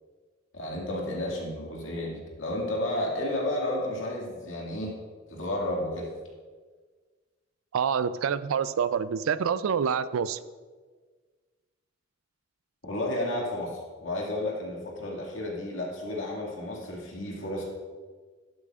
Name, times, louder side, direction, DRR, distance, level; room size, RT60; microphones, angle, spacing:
voice 1, 0.5-4.9 5.3-6.1 12.8-17.6, left 1 dB, 75° left, -2 dB, 2.0 m, -32 dB
voice 2, 7.7-10.4, right 7 dB, 90° right, 15 dB, 0.4 m, -27 dB
12.0 x 8.4 x 2.4 m, 1.5 s
head